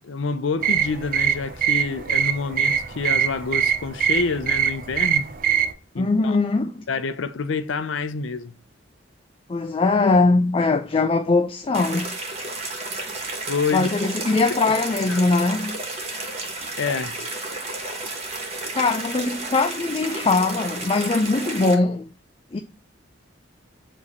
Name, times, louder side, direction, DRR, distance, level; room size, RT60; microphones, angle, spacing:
voice 1, 0.0-5.3 5.9-6.3 6.9-8.6 13.5-13.9 15.1-15.2 16.8-17.2, left 4 dB, 85° left, 0.6 m, -27 dB
sound 1, 0.6-5.7, right 8 dB, 50° right, 0.7 m, -23 dB
voice 2, 6.0-6.9 9.5-12.1 13.7-15.8 18.7-22.1 22.5-22.6, left 3 dB, 30° left, 0.4 m, -21 dB
sound 2, 11.7-21.7, right 2 dB, 35° right, 1.5 m, -32 dB
7.2 x 3.2 x 4.1 m
head